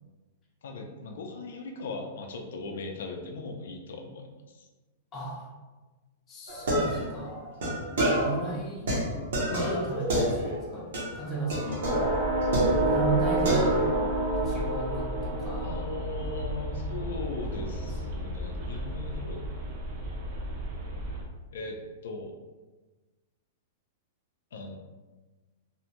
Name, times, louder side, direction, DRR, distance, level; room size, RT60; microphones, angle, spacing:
voice 1, 0.6-4.3 4.5-4.7 15.6-19.5 21.5-21.8 22.0-22.4 24.5-24.8, left 3 dB, 75° left, 3 dB, 0.4 m, -38 dB
voice 2, 5.1-5.5 6.3-7.4 8.0-8.9 9.5-10.9 11.1-11.9 12.8-15.7 17.5-18.2, right 3 dB, 15° left, -4 dB, 0.5 m, -35 dB
sound 1, 6.5-8.5 8.9-10.7 10.9-11.2 11.5-13.2 13.4-14.0, equal, 70° right, 0.8 m, -28 dB
sound 2, 11.8-21.2, right 1 dB, 35° right, 0.4 m, -30 dB
2.6 x 2.1 x 2.9 m, 1.2 s
supercardioid pair, 175°, 0 cm